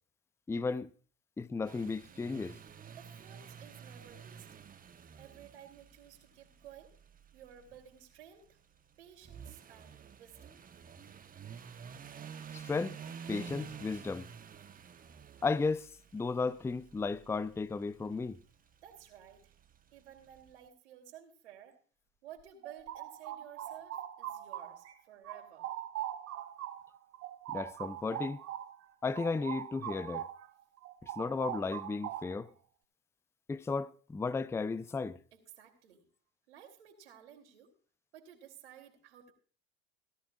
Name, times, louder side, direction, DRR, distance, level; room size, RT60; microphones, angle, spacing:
voice 1, 0.5-0.9 1.4-2.6 12.5-13.0 13.3-14.3 15.4-18.4 27.5-28.4 29.0-30.3 31.0-32.5 33.5-35.2, left 4 dB, 10° left, 0.5 m, -34 dB
sound 1, 1.6-20.5, right 7 dB, 25° right, 1.0 m, -51 dB
voice 2, 3.0-4.6 5.2-6.9 7.3-8.6 9.0-10.6 18.8-19.5 19.9-21.8 22.2-25.7 35.3-36.1 36.5-37.7 38.1-39.3, right 10 dB, 75° right, 3.5 m, -54 dB
sound 2, 22.4-24.9 25.2-30.5 30.8-32.5, right 12 dB, 50° right, 2.5 m, -42 dB
17.5 x 14.5 x 2.4 m
hypercardioid pair, 75°, 34 cm